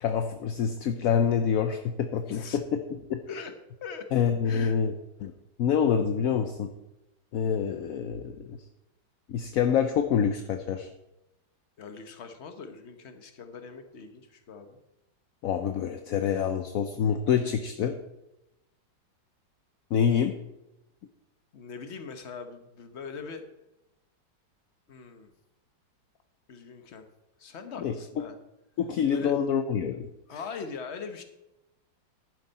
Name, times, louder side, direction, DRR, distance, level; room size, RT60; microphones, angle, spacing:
voice 1, 0.0-3.2 4.1-4.9 5.2-5.3 5.6-6.7 7.3-8.6 9.3-10.9 15.4-18.0 19.9-20.3 27.8-27.9 28.8-30.4, left 7 dB, 65° left, 7 dB, 0.9 m, -26 dB
voice 2, 2.3-2.6 3.3-3.5 3.8-4.1 4.4-4.8 11.8-14.8 21.5-23.4 24.9-25.3 26.5-27.1 27.4-28.4 29.1-29.4 30.3-31.2, left 5 dB, 45° left, 7 dB, 1.2 m, -41 dB
11.5 x 9.9 x 4.1 m, 0.93 s
omnidirectional pair, 2.0 m